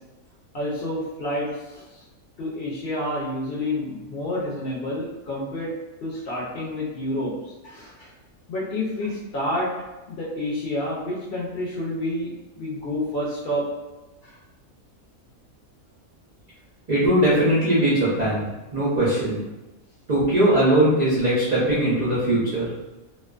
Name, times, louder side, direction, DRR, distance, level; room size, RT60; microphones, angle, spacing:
voice 1, 0.5-1.8 2.4-5.7 6.0-7.3 7.6-8.1 8.5-9.7 10.1-13.7, left 1 dB, 60° left, -6 dB, 0.6 m, -29 dB
voice 2, 16.9-19.4 20.1-22.7, right 1 dB, 60° right, -8 dB, 0.4 m, -20 dB
2.4 x 2.2 x 2.3 m, 1.1 s
omnidirectional pair, 1.5 m